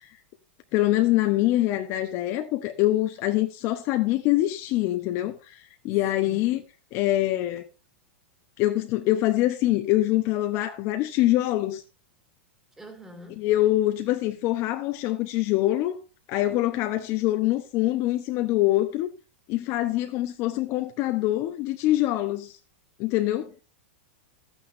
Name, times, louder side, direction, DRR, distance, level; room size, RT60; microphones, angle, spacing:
voice 1, 0.7-6.6 6.9-7.7 8.6-11.8 13.4-16.0 16.3-19.1 19.5-22.6 23.0-23.5, left 15 dB, 45° left, 0.9 m, -24 dB
voice 2, 6.1-6.4 12.8-13.5, equal, 10° right, 2.6 m, -45 dB
13.0 x 8.9 x 2.7 m
hypercardioid pair, 125°, 6 cm